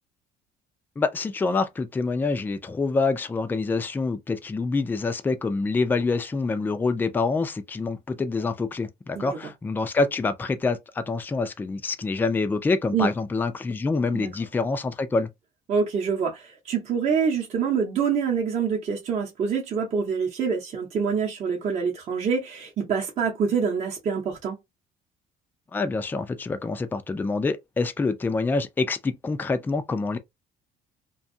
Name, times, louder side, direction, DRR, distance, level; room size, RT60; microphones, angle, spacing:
voice 1, 1.0-15.3 25.7-30.2, left 3 dB, 10° left, 0.3 m, -26 dB
voice 2, 15.7-24.6, right 6 dB, 40° right, 0.8 m, -26 dB
2.6 x 2.3 x 2.6 m
cardioid pair, 145°, 17 cm